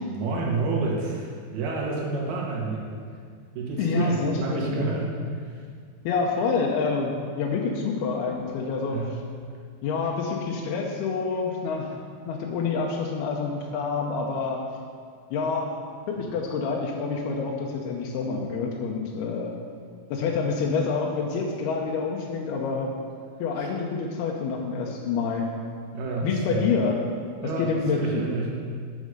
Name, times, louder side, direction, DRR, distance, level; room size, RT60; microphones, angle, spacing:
voice 1, 0.0-2.9 3.5-5.6 8.9-9.2 16.1-16.3 23.6-23.7 25.9-26.6 27.4-28.5, right 3 dB, 70° right, -3 dB, 3.3 m, -29 dB
voice 2, 3.8-4.8 6.1-9.0 9.8-11.9 12.3-14.6 15.3-15.7 16.1-19.5 20.1-22.9 23.4-25.5 26.2-27.0 27.6-28.2, left 5 dB, 75° left, -1 dB, 2.5 m, -27 dB
8.9 x 6.3 x 6.5 m, 2.1 s
omnidirectional pair, 5.0 m